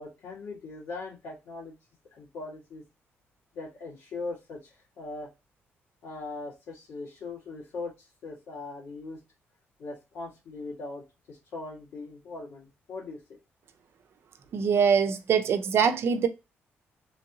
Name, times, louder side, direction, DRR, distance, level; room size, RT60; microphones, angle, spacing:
voice 1, 0.0-1.8 2.1-2.8 3.5-5.3 6.0-7.9 8.2-9.2 9.8-13.2, left 3 dB, 90° left, 1.6 m, -40 dB
voice 2, 14.5-16.3, right 6 dB, 60° right, 0.5 m, -23 dB
3.1 x 2.6 x 2.8 m
cardioid pair, 110°, 5 cm